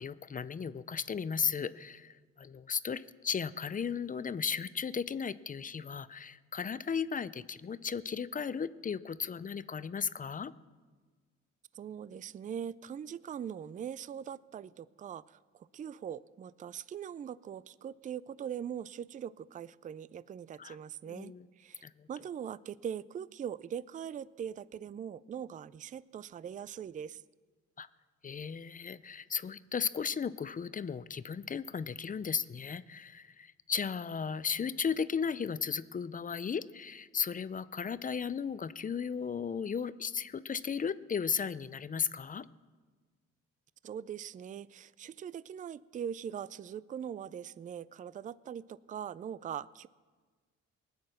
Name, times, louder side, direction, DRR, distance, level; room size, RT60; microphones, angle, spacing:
voice 1, 0.0-10.5 20.6-20.8 21.1-21.5 21.8-22.1 27.8-27.9 28.2-42.5, left 6 dB, 30° left, 16 dB, 0.5 m, -35 dB
voice 2, 11.7-27.2 43.8-49.9, right 8 dB, 25° right, 19 dB, 0.3 m, -41 dB
19.0 x 9.4 x 6.5 m, 1.4 s
cardioid pair, 90°, 30 cm